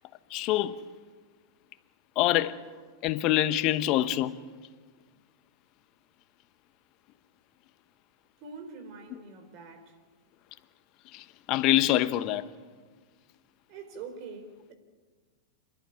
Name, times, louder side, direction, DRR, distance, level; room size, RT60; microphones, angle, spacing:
voice 1, 0.3-0.8 2.2-2.6 3.0-4.4 9.1-9.2 11.1-12.5, left 14 dB, 45° left, 1.2 m, -25 dB
voice 2, 8.4-9.9 13.7-14.7, right 4 dB, 50° right, 4.6 m, -44 dB
28.5 x 12.0 x 9.9 m
hypercardioid pair, 105°, 0 cm